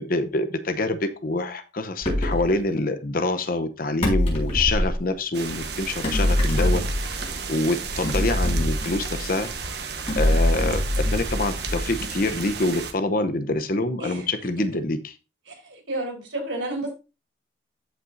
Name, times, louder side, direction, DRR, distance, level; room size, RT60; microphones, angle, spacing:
voice 1, 0.0-7.2 7.5-9.5 10.2-15.1, left 2 dB, 50° left, 10 dB, 0.8 m, -26 dB
sound 1, 2.0-2.5 4.0-5.0 6.0-7.3 8.0-9.4 10.1-12.0, left 1 dB, 35° left, 5.0 m, -24 dB
sound 2, 5.3-12.9, right 4 dB, 60° right, 1.2 m, -33 dB
voice 2, 15.5-16.9, right 1 dB, 85° right, 1 dB, 4.2 m, -31 dB
14.0 x 5.6 x 2.7 m, 0.29 s
head